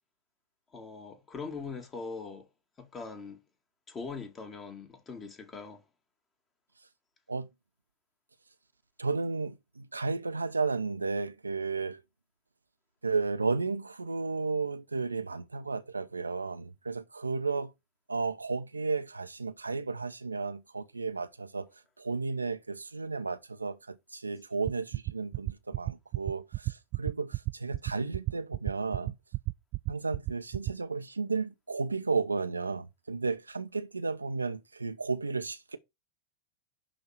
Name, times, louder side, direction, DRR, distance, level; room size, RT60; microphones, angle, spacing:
voice 1, 0.7-2.5 2.8-3.4 3.9-5.8, left 4 dB, 25° left, 2.1 m, -41 dB
voice 2, 9.0-12.0 13.0-17.7 18.1-21.7 22.0-29.1 29.9-35.8, right 4 dB, 80° right, 0.8 m, -33 dB
sound 1, 24.7-30.7, right 22 dB, 40° right, 0.5 m, -31 dB
11.0 x 3.7 x 5.9 m
figure-of-eight pair, 90°, 0 cm